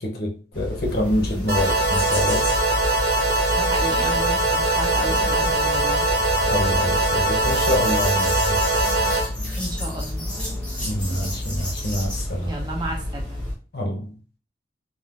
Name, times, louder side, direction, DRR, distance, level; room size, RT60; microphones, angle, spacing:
voice 1, 0.0-2.5 6.4-8.6 10.8-12.5 13.7-14.2, left 1 dB, 60° left, 1 dB, 0.7 m, -26 dB
sound 1, 0.5-13.5, left 1 dB, 5° left, 0.9 m, -29 dB
sound 2, 1.5-9.3, right 2 dB, 60° right, 1.0 m, -22 dB
voice 2, 3.6-6.0 9.6-10.3 12.4-13.4, right 1 dB, 25° right, 0 dB, 0.6 m, -33 dB
3.5 x 2.4 x 2.4 m, 0.39 s
head